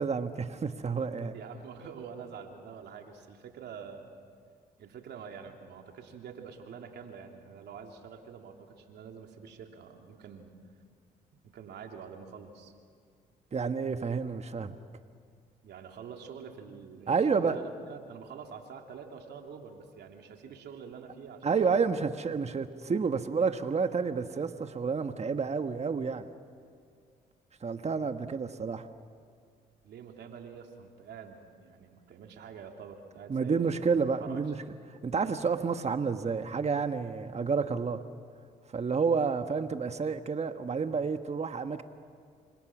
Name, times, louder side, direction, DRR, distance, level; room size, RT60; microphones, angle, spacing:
voice 1, 0.0-1.3 13.5-14.8 17.1-17.6 21.4-26.3 27.6-28.9 33.3-34.6 35.0-38.0 38.7-41.8, right 5 dB, 35° right, 8 dB, 1.4 m, -30 dB
voice 2, 1.3-4.2 4.8-10.6 11.4-12.7 15.6-22.0 29.8-34.4, right 6 dB, 70° right, 3 dB, 3.1 m, -46 dB
30.0 x 25.5 x 6.2 m, 2.2 s
supercardioid pair, 60°, 18 cm